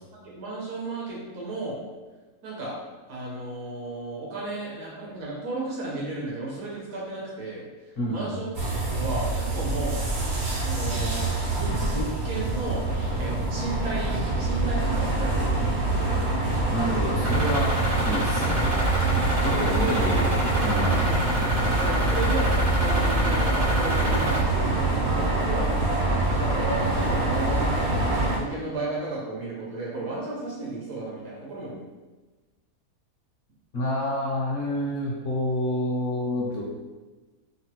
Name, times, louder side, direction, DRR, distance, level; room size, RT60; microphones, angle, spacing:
voice 1, 0.1-1.8 2.4-2.7 3.1-7.6 8.1-10.0 10.6-12.9 13.2-15.8 19.3-20.3 20.7-25.7 26.4-31.8, right 2 dB, 85° right, -5 dB, 1.6 m, -34 dB
voice 2, 8.0-8.3 16.7-17.7 18.0-18.6 19.4-20.2 20.6-20.9 33.7-36.6, left 1 dB, 50° left, -6 dB, 0.7 m, -28 dB
sound 1, 8.5-28.4, right 2 dB, 60° right, 0.6 m, -25 dB
sound 2, 17.2-24.4, equal, 20° right, 0.4 m, -29 dB
3.7 x 2.1 x 2.8 m, 1.2 s
omnidirectional pair, 1.7 m